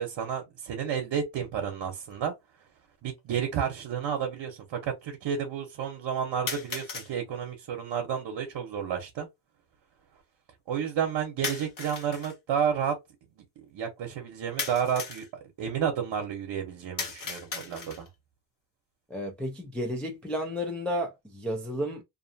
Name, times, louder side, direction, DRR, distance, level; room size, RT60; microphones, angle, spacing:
voice 1, 0.0-2.3 3.0-9.3 10.7-13.0 13.7-15.3 15.6-18.1, right 8 dB, 70° right, 0.9 m, -31 dB
sound 1, 2.1-2.2 3.2-3.3 6.5-7.1 11.4-12.4 14.6-15.3 17.0-18.1, left 5 dB, 45° left, 0.9 m, -36 dB
voice 2, 19.1-22.0, equal, 5° left, 0.4 m, -32 dB
2.6 x 2.4 x 2.6 m
cardioid pair, 135°, 45 cm